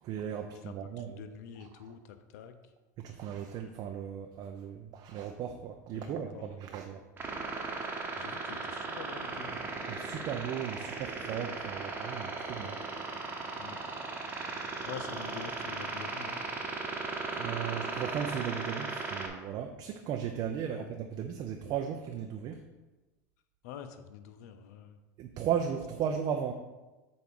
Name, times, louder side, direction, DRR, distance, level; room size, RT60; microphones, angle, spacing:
voice 1, 0.0-1.2 3.0-7.0 9.9-12.7 17.4-22.6 25.2-26.5, right 8 dB, 45° right, 4 dB, 0.6 m, -36 dB
voice 2, 0.6-2.7 5.9-6.6 8.2-9.5 12.6-12.8 13.6-13.8 14.8-16.5 20.7-20.9 23.6-25.0, left 8 dB, 70° left, 8 dB, 0.6 m, -46 dB
sound 1, 7.2-19.3, right 3 dB, 20° right, 1.1 m, -37 dB
7.7 x 2.7 x 5.3 m, 1.1 s
hypercardioid pair, 110°, 9 cm